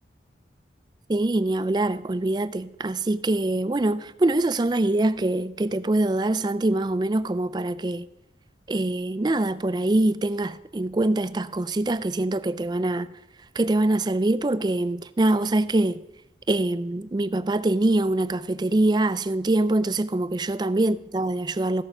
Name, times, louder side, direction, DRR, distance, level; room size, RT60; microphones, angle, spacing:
voice 1, 1.1-8.1 8.7-13.2 13.5-16.0 16.5-21.8, right 2 dB, 25° right, 0.4 m, -24 dB
15.0 x 6.5 x 6.1 m
head